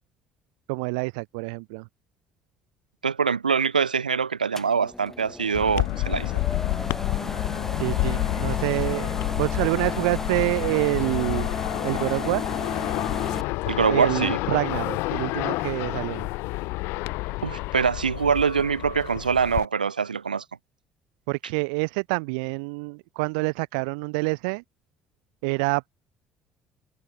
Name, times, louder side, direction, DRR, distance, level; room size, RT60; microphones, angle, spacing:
voice 1, 0.7-1.9 7.8-11.5 11.8-12.4 13.9-16.3 21.3-24.6 25.4-25.9, right 32 dB, 70° right, 2.2 m, -27 dB
voice 2, 3.0-6.3 13.7-14.6 17.4-20.4, right 6 dB, 85° right, 2.4 m, -24 dB
sound 1, 4.6-13.4, left 1 dB, 10° left, 7.0 m, -34 dB
sound 2, 5.5-19.6, left 23 dB, 65° left, 6.6 m, -29 dB
figure-of-eight pair, 50°, 4 cm